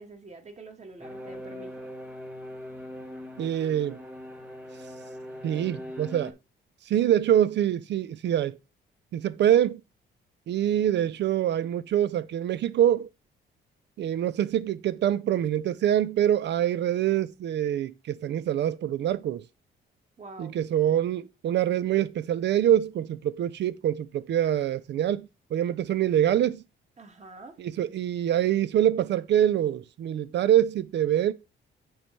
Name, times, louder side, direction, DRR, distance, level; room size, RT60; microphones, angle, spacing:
voice 1, 0.0-1.9 20.2-20.6 27.0-27.6, right 3 dB, 35° right, 1.8 m, -46 dB
sound 1, 1.0-6.3, equal, 5° right, 1.4 m, -41 dB
voice 2, 3.4-4.0 5.4-6.3 6.9-8.6 9.1-9.8 10.5-13.1 14.0-19.4 20.4-26.6 27.6-31.3, right 11 dB, 60° right, 0.5 m, -25 dB
7.6 x 3.2 x 5.3 m
cardioid pair, 90°, 20 cm